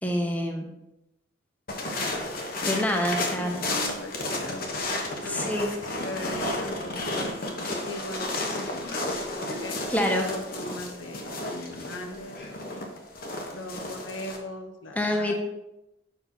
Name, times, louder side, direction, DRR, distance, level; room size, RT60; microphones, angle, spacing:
voice 1, 0.0-0.7 2.6-3.6 5.3-5.7 9.9-10.2 14.9-15.3, left 1 dB, 10° left, 2 dB, 0.8 m, -26 dB
sound 1, 1.7-14.4, left 2 dB, 45° left, 1.1 m, -32 dB
voice 2, 3.2-4.7 5.0-8.9 9.4-12.9 13.5-15.3, left 1 dB, 80° left, 4 dB, 1.0 m, -39 dB
7.1 x 5.4 x 4.4 m, 0.92 s
head